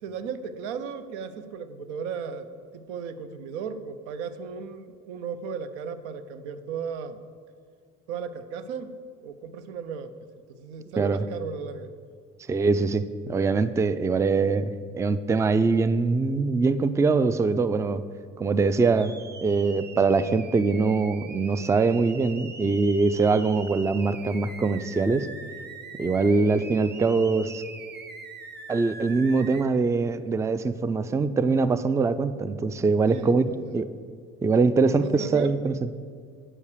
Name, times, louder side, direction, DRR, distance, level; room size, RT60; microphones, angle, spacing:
voice 1, 0.0-2.5 2.7-7.2 8.1-10.1 10.5-11.9 33.1-33.8 34.8-35.6, right 6 dB, 90° right, 12 dB, 0.6 m, -36 dB
voice 2, 11.0-11.3 12.5-18.0 18.4-19.2 19.4-25.3 26.0-27.6 28.7-33.4 33.7-33.9 34.4-35.7, right 4 dB, 10° right, 14 dB, 0.3 m, -23 dB
sound 1, 19.0-29.6, right 4 dB, 30° right, 1.0 m, -43 dB
8.4 x 5.4 x 6.6 m, 2.2 s
supercardioid pair, 65°, 33 cm